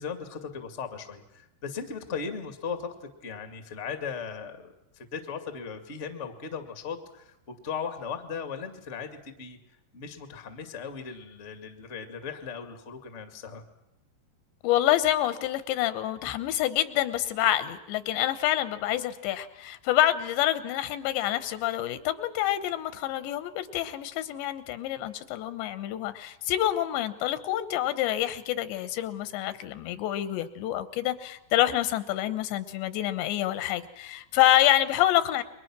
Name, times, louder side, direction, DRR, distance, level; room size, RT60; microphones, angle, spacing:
voice 1, 0.0-2.9 3.2-9.6 9.9-13.6, left 6 dB, 35° left, 7 dB, 1.1 m, -37 dB
voice 2, 14.6-35.4, left 13 dB, 85° left, 12 dB, 3.3 m, -27 dB
29.5 x 23.5 x 6.1 m, 0.82 s
omnidirectional pair, 5.0 m